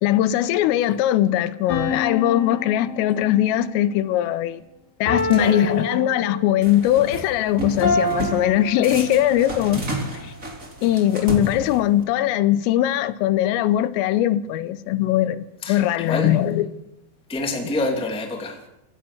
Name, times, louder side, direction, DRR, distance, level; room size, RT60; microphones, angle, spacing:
voice 1, 0.0-4.6 5.0-9.8 10.2-10.3 10.8-16.7, left 12 dB, 85° left, 3.6 m, -20 dB
sound 1, 1.7-3.6 5.1-6.7 7.8-9.5, left 2 dB, 65° left, 6.6 m, -27 dB
sound 2, 6.6-7.2 7.6-8.4 8.8-12.0, right 1 dB, 15° right, 3.8 m, -31 dB
voice 2, 15.6-16.3 17.3-18.6, left 2 dB, ahead, 1.5 m, -27 dB
27.5 x 16.0 x 7.1 m
omnidirectional pair, 5.8 m